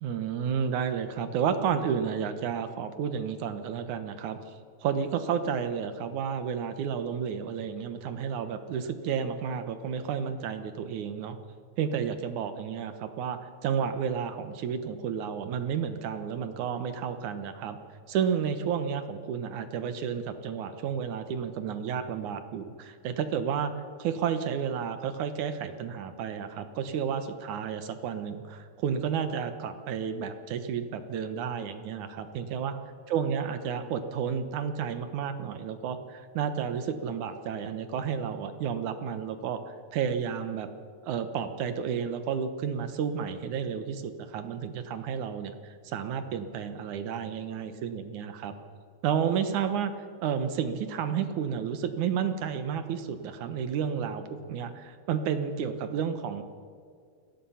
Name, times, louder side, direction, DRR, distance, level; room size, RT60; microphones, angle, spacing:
voice 1, 0.0-4.4 4.8-11.4 11.8-17.8 18.1-23.7 24.0-32.8 33.1-40.7 41.0-48.5 49.0-49.9 50.2-56.4, right 7 dB, 80° right, 9 dB, 2.7 m, -31 dB
28.0 x 18.5 x 5.7 m, 2.1 s
omnidirectional pair, 3.4 m